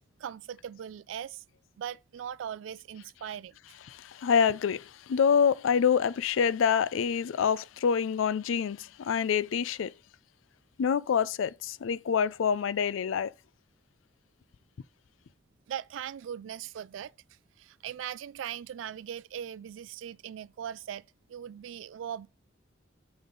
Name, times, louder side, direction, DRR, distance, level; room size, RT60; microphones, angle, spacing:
voice 1, 0.2-1.4 1.8-3.6 15.7-17.1 17.6-21.0 21.3-22.3, right 9 dB, 75° right, 0.3 m, -39 dB
voice 2, 3.9-9.9 10.8-13.3, left 7 dB, 80° left, 0.4 m, -26 dB
7.0 x 5.3 x 3.8 m
head